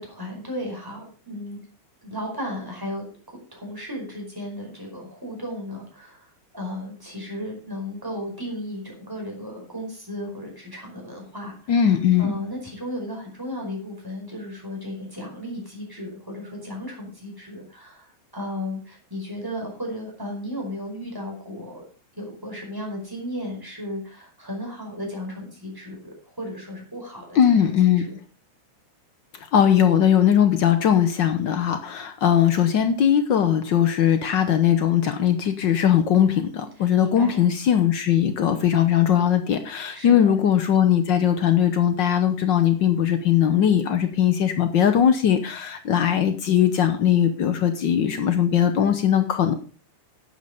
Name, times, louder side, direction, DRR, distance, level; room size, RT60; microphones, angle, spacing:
voice 1, 0.0-1.6 2.0-3.1 3.5-6.3 6.5-21.8 22.1-28.2 36.8-37.4 39.9-40.3, left 1 dB, 5° right, -1 dB, 4.9 m, -35 dB
voice 2, 11.7-12.4 27.4-28.0 29.5-49.5, left 9 dB, 90° left, 8 dB, 1.0 m, -20 dB
11.5 x 8.6 x 5.1 m, 0.39 s
omnidirectional pair, 3.4 m